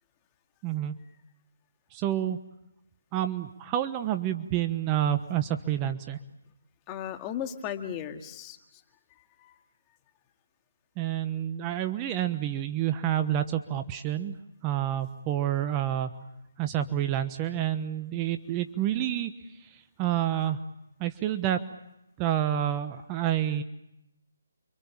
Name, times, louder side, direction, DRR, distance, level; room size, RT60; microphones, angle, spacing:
voice 1, 0.6-1.0 1.9-2.4 3.1-6.2 11.0-14.4 14.6-16.1 16.6-19.3 19.6-20.6 21.0-21.6 22.2-23.6, right 11 dB, 20° right, 9 dB, 1.2 m, -28 dB
voice 2, 6.9-8.8 9.4-9.5, left 9 dB, 20° left, 6 dB, 2.2 m, -36 dB
29.5 x 25.5 x 7.4 m, 0.87 s
figure-of-eight pair, 150°, 0 cm